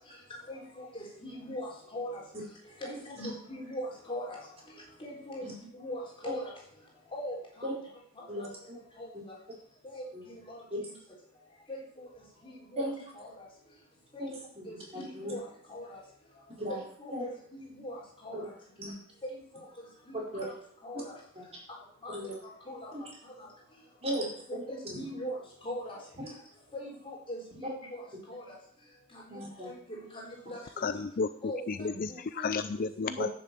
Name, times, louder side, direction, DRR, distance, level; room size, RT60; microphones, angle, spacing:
voice 1, 0.5-2.2 2.8-2.9 3.2-4.4 5.0-5.5 5.8-6.5 7.1-7.3 8.4-8.5 9.0-9.1 9.8-10.0 10.5-10.6 11.7-12.1 12.4-12.8 13.2-13.3 14.1-14.2 14.7-14.8 15.3-15.4 15.7-16.0 16.7-18.4 19.5-19.6 20.1-20.5 20.8-21.1 22.0-22.1 22.7-22.9 24.5-25.4 25.6-26.0 26.7-28.0 28.3-28.4 29.6-30.9 31.4-32.5 33.0-33.1, left 1 dB, 25° left, -3 dB, 4.0 m, -40 dB
voice 2, 8.3-8.8 10.1-10.2 10.7-10.8 12.8-13.0 14.2-15.3 16.6-16.8 17.1-17.3 18.3-18.4 18.8-18.9 20.3-20.4 21.3-21.4 22.1-22.3 22.9-23.0 24.0-25.1 29.3-29.7 31.9-32.0 33.2-33.3, equal, 30° right, -3 dB, 4.4 m, -37 dB
voice 3, 30.8-31.3 31.7-33.3, left 4 dB, 40° left, 12 dB, 0.4 m, -32 dB
10.5 x 6.8 x 7.5 m, 0.62 s
head